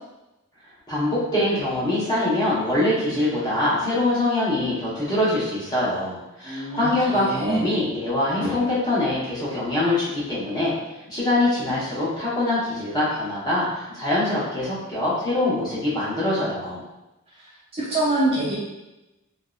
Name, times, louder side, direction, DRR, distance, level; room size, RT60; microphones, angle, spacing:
voice 1, 0.9-10.7 11.1-16.8, left 1 dB, 20° left, -9 dB, 0.8 m, -24 dB
voice 2, 6.4-7.6 17.4-17.5 17.7-18.6, right 1 dB, 25° right, -7 dB, 0.4 m, -25 dB
2.6 x 2.0 x 2.3 m, 0.98 s
head